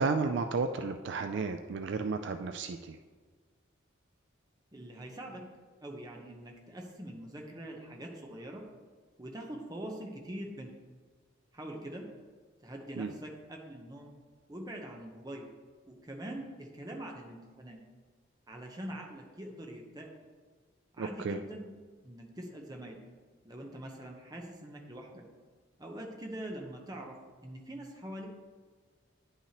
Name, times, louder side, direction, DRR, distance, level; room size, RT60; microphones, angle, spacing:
voice 1, 0.0-3.0 13.0-13.1 21.0-21.4, right 4 dB, 60° right, 7 dB, 0.3 m, -32 dB
voice 2, 4.7-5.4 5.8-8.6 9.2-10.7 11.5-12.0 12.6-14.1 14.5-15.5 15.9-17.8 18.5-20.1 20.9-21.6 22.0-23.0 23.4-25.2 25.8-27.2 27.4-28.3, right 1 dB, 20° right, 1 dB, 0.8 m, -43 dB
9.5 x 5.6 x 3.0 m, 1.5 s
head